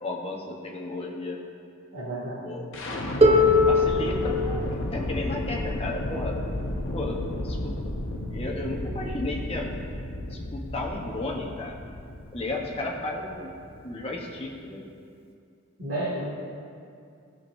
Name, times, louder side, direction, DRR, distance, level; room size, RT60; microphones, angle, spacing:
voice 1, 0.0-1.4 2.4-2.8 3.7-6.4 6.9-7.8 8.3-9.8 10.3-11.8 12.3-13.5 13.8-14.8, left 2 dB, 25° left, -1 dB, 1.0 m, -33 dB
voice 2, 1.9-2.4 15.8-16.3, right 1 dB, 80° right, -12 dB, 2.4 m, -31 dB
sound 1, 2.7-14.6, left 1 dB, 65° left, 0.9 m, -33 dB
Harp, 3.2-9.0 10.0-10.1, left 2 dB, 25° right, 0.7 m, -25 dB
16.5 x 6.2 x 2.7 m, 2.4 s
head